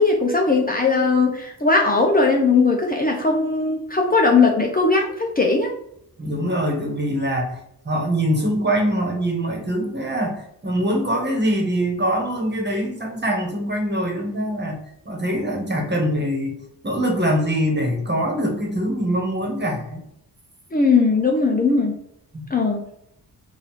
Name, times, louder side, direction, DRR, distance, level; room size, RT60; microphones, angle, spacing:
voice 1, 0.0-5.7 20.7-21.9 22.5-22.8, left 4 dB, 20° left, 0 dB, 0.8 m, -19 dB
voice 2, 6.2-7.6 7.8-14.8 15.0-16.6 16.8-20.0 22.3-22.4, equal, 25° right, 1 dB, 1.6 m, -23 dB
3.8 x 2.8 x 4.5 m, 0.76 s
cardioid pair, 60°, 42 cm